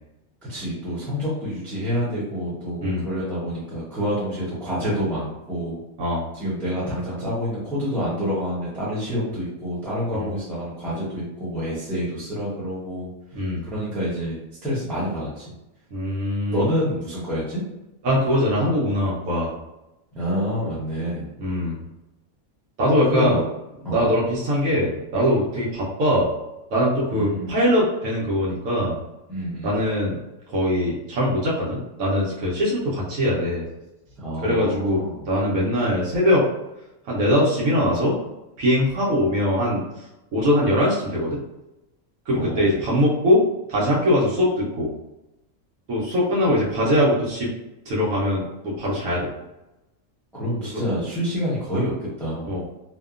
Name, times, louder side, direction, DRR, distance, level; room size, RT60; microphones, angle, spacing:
voice 1, 0.5-5.8 6.3-13.1 13.6-15.5 16.5-17.6 20.1-21.3 23.1-23.4 23.8-24.0 27.1-27.6 29.3-29.8 34.2-35.2 42.3-42.7 50.3-52.5, equal, ahead, -9 dB, 0.6 m, -27 dB
voice 2, 15.9-16.6 18.0-19.5 21.4-21.8 22.8-23.4 23.9-26.3 26.7-29.0 29.6-30.2 30.5-33.7 34.4-36.4 37.1-38.2 38.6-39.8 40.3-41.4 42.3-43.4 43.7-44.9 45.9-47.5 47.9-49.3 50.7-50.8 52.4-52.6, equal, 90° right, -6 dB, 1.2 m, -22 dB
2.8 x 2.1 x 2.4 m, 0.95 s
omnidirectional pair, 1.4 m